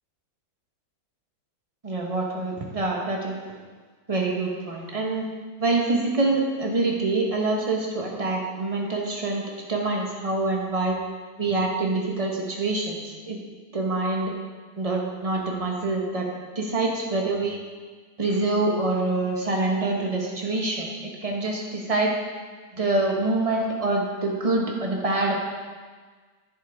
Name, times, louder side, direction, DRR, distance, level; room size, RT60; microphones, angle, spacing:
voice 1, 1.8-3.4 4.1-5.3 5.6-10.9 11.4-13.0 13.2-13.4 13.7-14.3 14.8-16.3 16.5-17.6 18.2-20.9 21.2-22.1 22.7-25.3, right 2 dB, 20° right, -1 dB, 1.1 m, -25 dB
10.5 x 7.8 x 3.6 m, 1.4 s
omnidirectional pair, 2.1 m